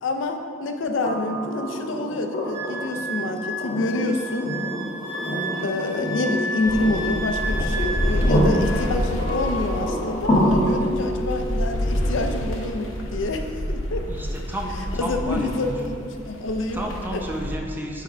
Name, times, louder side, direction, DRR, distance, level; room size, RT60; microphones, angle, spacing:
voice 1, 0.0-4.5 5.6-14.0 15.0-16.0 16.2-16.8 17.1-17.2, left 2 dB, 70° left, 5 dB, 0.5 m, -27 dB
sound 1, 1.0-15.0 16.7-16.8, equal, 40° left, 1.4 m, -28 dB
Wind instrument woodwind instrument, 2.5-8.9 9.2-9.9, equal, 45° right, 1.4 m, -32 dB
sound 2, 6.6-17.6, equal, 85° left, 0.9 m, -28 dB
voice 2, 14.1-15.8 16.7-18.0, equal, 10° right, 0 dB, 0.6 m, -32 dB
7.3 x 3.5 x 5.4 m, 2.3 s
head